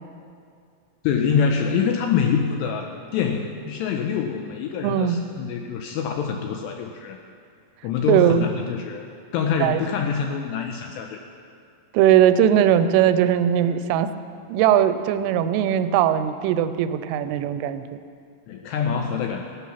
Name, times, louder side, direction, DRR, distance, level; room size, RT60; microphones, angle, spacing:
voice 1, 1.0-7.2 7.8-11.2 18.5-19.6, left 6 dB, 90° left, 3 dB, 2.5 m, -25 dB
voice 2, 4.8-5.2 8.1-8.5 9.6-9.8 11.9-14.1 14.5-18.0, right 10 dB, 90° right, 11 dB, 3.2 m, -19 dB
16.5 x 12.5 x 5.7 m, 2.3 s
omnidirectional pair, 5.6 m